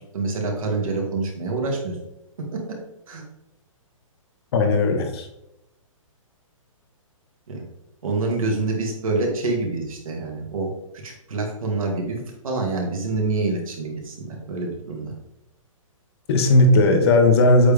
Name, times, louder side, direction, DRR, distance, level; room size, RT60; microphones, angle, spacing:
voice 1, 0.1-2.0 2.5-2.6 3.1-3.2 7.5-7.6 8.0-10.7 11.0-15.1, right 3 dB, 75° right, 0 dB, 2.1 m, -26 dB
voice 2, 4.5-5.3 16.3-17.7, left 2 dB, 45° left, 5 dB, 1.1 m, -16 dB
7.8 x 3.5 x 3.4 m, 0.86 s
hypercardioid pair, 145°, 18 cm